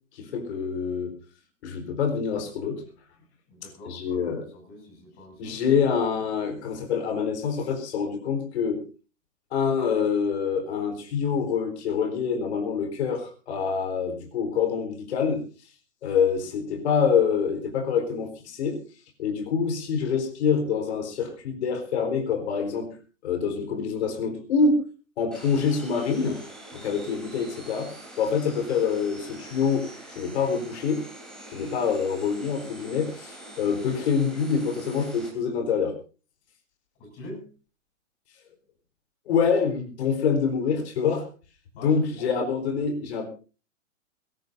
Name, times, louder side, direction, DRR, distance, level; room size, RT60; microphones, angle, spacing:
voice 1, 0.1-1.1 1.6-2.9 3.9-4.4 5.4-8.8 9.5-15.4 16.0-18.8 19.2-22.9 23.2-24.8 25.2-26.4 26.7-29.9 30.1-31.1 31.5-36.0 39.3-41.3 41.8-43.3, left 6 dB, 55° left, 5 dB, 4.3 m, -26 dB
voice 2, 3.5-5.6 36.9-37.5 41.8-42.3, left 1 dB, 25° left, 2 dB, 7.5 m, -44 dB
sound 1, 25.3-35.3, right 1 dB, ahead, 3.7 m, -45 dB
22.0 x 18.0 x 2.7 m, 0.35 s
hypercardioid pair, 165°, 40 cm